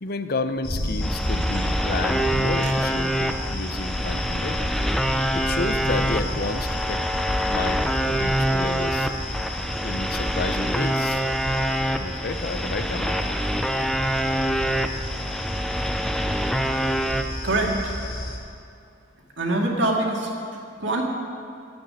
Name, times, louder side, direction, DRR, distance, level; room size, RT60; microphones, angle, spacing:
voice 1, 0.0-4.7 5.3-9.1 9.8-11.3 11.6-13.2, left 3 dB, 55° left, 10 dB, 0.7 m, -31 dB
sound 1, 0.6-18.4, left 1 dB, 30° left, 2.4 m, -31 dB
sound 2, 1.0-17.2, equal, ahead, 0.4 m, -26 dB
voice 2, 1.2-1.7 2.6-2.7 17.4-17.8 19.4-20.3 20.8-21.0, right 2 dB, 85° right, -1 dB, 2.2 m, -24 dB
9.9 x 8.9 x 9.7 m, 2.5 s
head